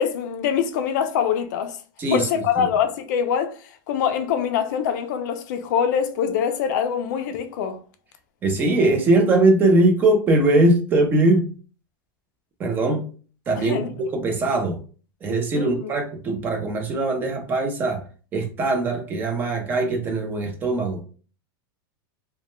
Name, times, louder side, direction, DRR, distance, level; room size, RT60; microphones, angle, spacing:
voice 1, 0.0-1.8 2.1-3.6 3.9-7.8 13.6-13.9 15.6-15.9, left 8 dB, 50° left, 0.4 m, -24 dB
voice 2, 2.0-2.7 8.4-11.5 12.6-13.1 13.5-14.8 15.2-18.0 18.3-21.0, right 2 dB, 15° right, 0.4 m, -21 dB
2.1 x 2.1 x 2.9 m
supercardioid pair, 170°, 12 cm